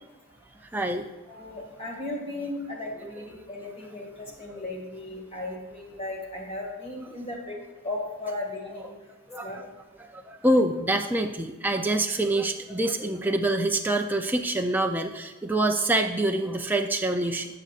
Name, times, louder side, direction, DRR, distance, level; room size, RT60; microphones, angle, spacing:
voice 1, 0.7-1.1 3.3-3.4 9.3-9.6 10.0-17.5, right 1 dB, 10° right, 3 dB, 0.4 m, -26 dB
voice 2, 1.3-7.6 7.8-8.9 9.4-9.6, left 2 dB, 25° left, 0 dB, 1.9 m, -36 dB
16.5 x 6.8 x 2.5 m, 1.2 s
head